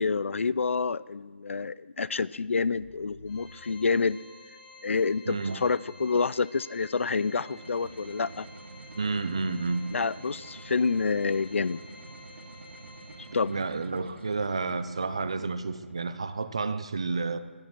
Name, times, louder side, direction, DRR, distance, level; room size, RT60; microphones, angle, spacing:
voice 1, 0.0-4.2 4.8-8.5 9.9-11.8 13.3-13.6, left 4 dB, 85° left, 20 dB, 0.4 m, -28 dB
sound 1, 2.7-4.5 6.8-7.7, equal, 85° right, 3.8 m, -53 dB
Organ, 3.3-13.9, left 3 dB, 10° left, 0.7 m, -51 dB
voice 2, 5.3-5.6 8.9-9.8 13.5-17.4, right 4 dB, 25° right, 12 dB, 0.4 m, -30 dB
sound 2, 7.1-16.2, right 3 dB, 70° right, 1.0 m, -48 dB
14.5 x 7.4 x 6.1 m, 1.4 s
hypercardioid pair, 180°, 7 cm